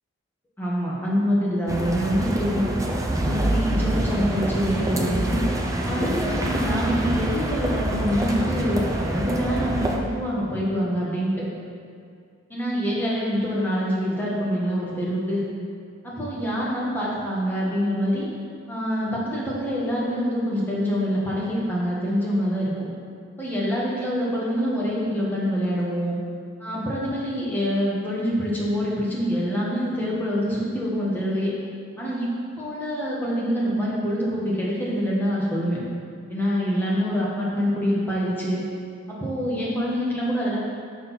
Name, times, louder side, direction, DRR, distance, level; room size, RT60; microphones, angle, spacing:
voice 1, 0.6-2.7 3.2-5.4 5.8-11.4 12.5-15.4 16.0-18.3 18.7-22.9 23.4-26.2 26.6-31.5 32.0-32.3 32.6-35.8 36.3-38.6 39.1-40.6, equal, 10° left, -6 dB, 1.4 m, -25 dB
sound 1, 1.7-10.0, right 1 dB, 15° right, 0.5 m, -26 dB
6.2 x 4.5 x 5.7 m, 2.3 s
head